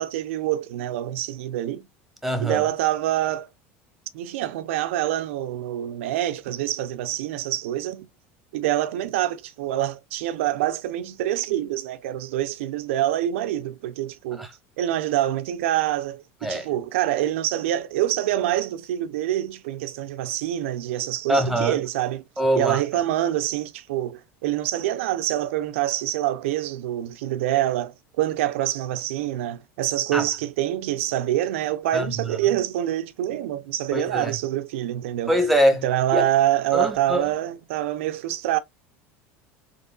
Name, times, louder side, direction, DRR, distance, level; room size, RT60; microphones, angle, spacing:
voice 1, 0.0-1.9 2.4-3.5 4.1-8.1 8.5-14.5 14.8-22.2 22.5-35.4 35.8-38.6, right 13 dB, 90° right, 0.4 m, -26 dB
voice 2, 2.2-2.6 14.4-14.5 16.4-16.6 21.3-21.8 22.4-22.8 30.1-30.2 31.9-32.1 33.9-34.3 35.3-35.8 36.1-36.2 36.7-37.2, equal, ahead, 1.0 m, -22 dB
3.8 x 2.9 x 2.2 m
supercardioid pair, 135°, 7 cm